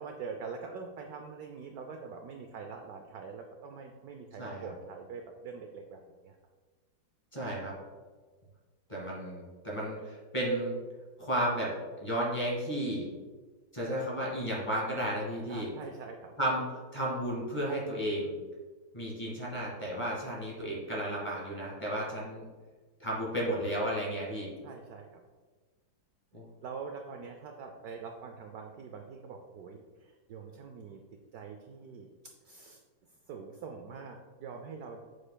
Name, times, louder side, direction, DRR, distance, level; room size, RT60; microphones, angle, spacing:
voice 1, 0.0-6.4 15.5-16.3 24.6-25.2 26.6-31.0 31.3-32.1 32.4-32.8 33.3-35.0, right 5 dB, 70° right, 4 dB, 0.9 m, -44 dB
voice 2, 4.4-4.7 7.3-7.7 8.9-10.8 11.2-11.7 12.0-13.1 13.7-15.7 16.4-18.3 18.9-22.4 23.0-24.5 26.3-26.4, right 1 dB, 15° left, -5 dB, 1.8 m, -33 dB
7.5 x 6.4 x 2.2 m, 1.4 s
omnidirectional pair, 2.0 m